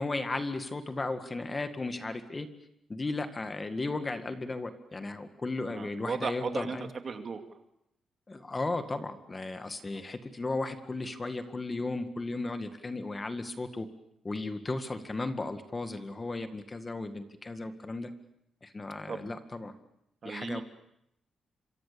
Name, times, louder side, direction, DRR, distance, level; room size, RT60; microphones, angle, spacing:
voice 1, 0.0-2.5 2.9-6.9 8.3-13.9 14.2-18.1 18.6-19.7 20.2-20.6, left 2 dB, 25° left, 9 dB, 1.9 m, -35 dB
voice 2, 5.7-7.4 9.9-10.1 19.1-19.3 20.2-20.6, right 5 dB, 45° right, 6 dB, 2.6 m, -36 dB
26.5 x 24.5 x 7.0 m, 0.79 s
cardioid pair, 105°, 0 cm